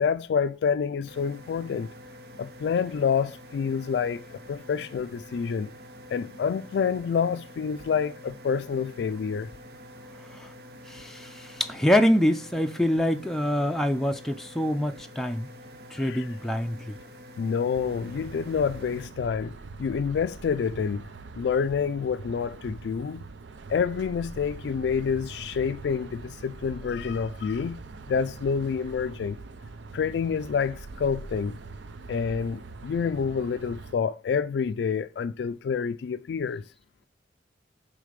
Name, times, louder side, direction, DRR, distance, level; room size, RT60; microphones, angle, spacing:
voice 1, 0.0-1.9 2.4-5.7 6.1-9.5 16.0-16.3 17.4-19.5 19.8-21.0 21.4-23.2 23.7-27.8 28.1-29.4 29.9-31.6 32.1-36.6, left 6 dB, 70° left, 0.3 m, -28 dB
sound 1, 1.1-19.1, equal, 60° right, 0.8 m, -47 dB
voice 2, 10.9-15.5 15.9-17.0, equal, ahead, 0.4 m, -25 dB
sound 2, 17.7-33.9, right 3 dB, 85° right, 0.5 m, -43 dB
6.5 x 3.9 x 5.1 m
head